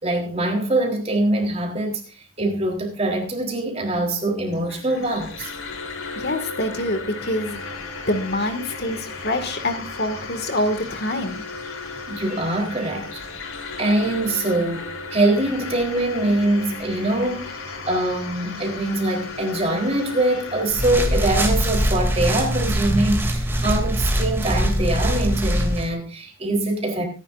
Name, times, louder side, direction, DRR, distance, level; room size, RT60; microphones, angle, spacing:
voice 1, 0.0-5.5 12.1-13.1 13.8-17.6 17.9-27.0, right 1 dB, 30° right, 3.8 m, -23 dB
sound 1, 4.5-21.5, left 4 dB, 90° left, 3.5 m, -35 dB
voice 2, 6.2-7.6 8.1-11.4, left 1 dB, 50° left, 2.1 m, -26 dB
sound 2, 20.7-25.9, equal, 10° right, 2.7 m, -22 dB
24.0 x 11.0 x 2.6 m
head